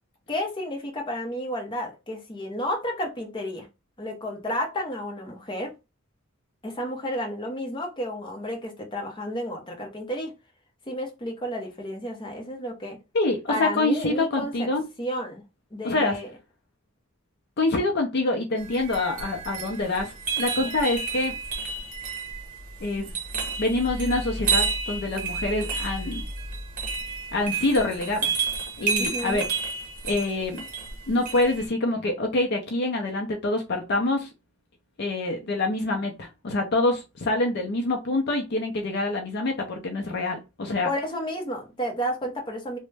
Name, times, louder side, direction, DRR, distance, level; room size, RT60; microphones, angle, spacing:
voice 1, 0.3-3.7 4.0-5.7 6.6-10.3 10.9-13.0 13.5-14.7 15.0-15.4 15.7-16.3 29.0-29.4 40.8-42.8, equal, 25° left, 0.8 m, -31 dB
voice 2, 13.1-14.9 15.8-16.2 17.6-21.3 22.8-23.1 23.6-26.3 27.3-28.4 28.8-29.5 30.0-30.6 31.1-34.3 35.0-40.9, left 2 dB, 55° left, 0.5 m, -26 dB
sound 1, 18.6-31.6, right 4 dB, 40° right, 0.8 m, -31 dB
3.0 x 2.1 x 3.3 m
head